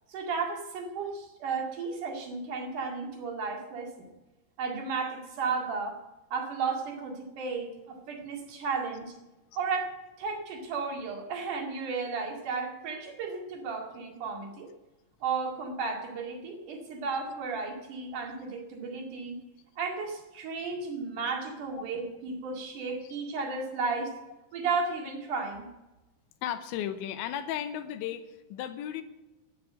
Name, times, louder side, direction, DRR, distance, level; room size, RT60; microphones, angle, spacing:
voice 1, 0.1-4.1 4.6-6.0 6.3-9.1 9.5-14.7 15.2-19.3 19.8-24.1 24.5-25.7, right 4 dB, 50° right, 1 dB, 3.2 m, -34 dB
voice 2, 26.4-29.0, left 10 dB, 85° left, 9 dB, 3.2 m, -35 dB
10.5 x 9.7 x 8.6 m, 1.0 s
omnidirectional pair, 5.2 m